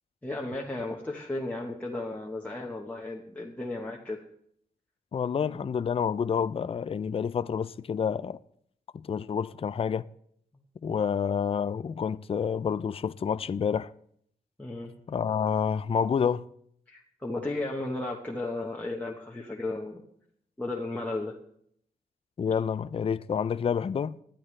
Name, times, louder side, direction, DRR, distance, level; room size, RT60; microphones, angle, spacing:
voice 1, 0.2-4.2 5.5-5.6 14.6-14.9 16.9-20.0 20.6-21.3, left 2 dB, 10° left, 1.2 m, -34 dB
voice 2, 5.1-8.4 8.9-10.0 10.8-13.9 15.1-16.5 22.4-24.2, left 7 dB, 35° left, 0.4 m, -28 dB
19.5 x 11.5 x 3.3 m
wide cardioid pair, 150°, 16 cm